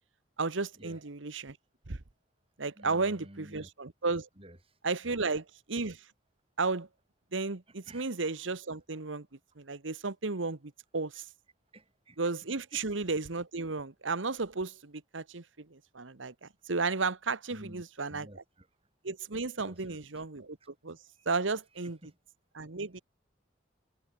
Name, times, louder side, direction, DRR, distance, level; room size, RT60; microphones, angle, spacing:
voice 1, 0.4-1.6 1.9-2.0 2.6-4.3 4.8-6.1 6.6-6.9 7.3-9.3 9.6-10.6 10.9-11.3 12.2-18.4 19.0-20.6 20.8-22.0 22.5-23.0, right 3 dB, 80° right, 1.3 m, -34 dB
voice 2, 2.8-3.7 4.4-4.6 5.0-5.2 7.9-8.1 11.7-12.2 12.7-12.9 17.5-17.8 18.1-18.7 19.6-20.0 21.2-21.3 22.0-22.1, right 1 dB, 30° right, 7.6 m, -51 dB
head